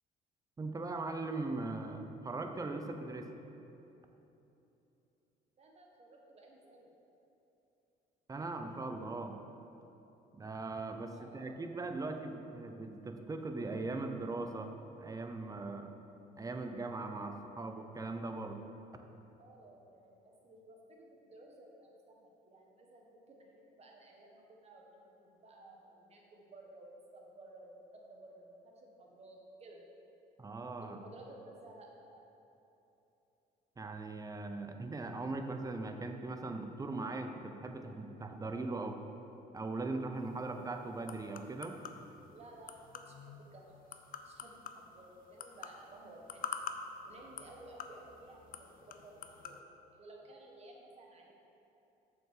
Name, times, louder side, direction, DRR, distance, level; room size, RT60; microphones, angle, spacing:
voice 1, 0.6-3.3 8.3-9.4 10.3-15.9 16.4-18.6 30.4-31.0 33.8-39.0 39.5-41.8, right 3 dB, 20° right, 5 dB, 0.7 m, -40 dB
voice 2, 5.6-6.9 11.1-11.6 15.9-16.0 19.4-29.8 30.8-32.2 38.8-38.9 42.3-43.8 44.2-46.5 47.0-49.6 49.9-51.3, right 2 dB, 40° right, 0 dB, 1.5 m, -55 dB
sound 1, 40.2-49.6, left 7 dB, 55° left, 0.6 m, -48 dB
7.1 x 5.8 x 6.6 m, 3.0 s
cardioid pair, 110°, 17 cm